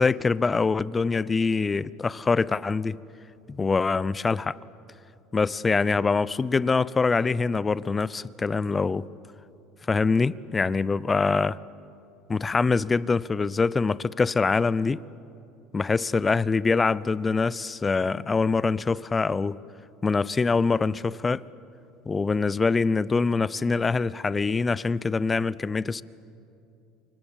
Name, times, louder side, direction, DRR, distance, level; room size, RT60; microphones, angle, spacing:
voice 1, 0.0-3.0 3.5-4.6 5.3-9.1 9.9-11.6 12.3-15.0 15.7-19.6 20.0-21.4 22.1-26.0, left 4 dB, 20° left, 0.6 m, -24 dB
28.0 x 25.5 x 7.2 m
supercardioid pair, 105°, 0 cm